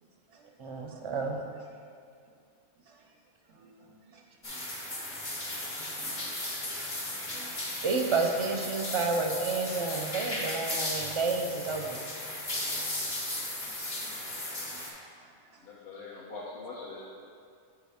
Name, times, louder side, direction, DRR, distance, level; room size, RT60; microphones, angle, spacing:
voice 1, 0.0-1.9 2.8-3.2 3.4-5.3 5.6-6.5 6.8-7.0 7.3-7.8 13.6-15.6, right 3 dB, 90° right, -2 dB, 0.9 m, -58 dB
voice 2, 0.6-1.4 7.8-12.0, right 4 dB, 40° right, 3 dB, 0.4 m, -30 dB
sound 1, 4.4-14.9, left 1 dB, 40° left, 1.2 m, -36 dB
voice 3, 15.6-17.0, left 3 dB, 60° left, -4 dB, 1.0 m, -42 dB
8.0 x 4.6 x 3.5 m, 2.3 s
omnidirectional pair, 1.2 m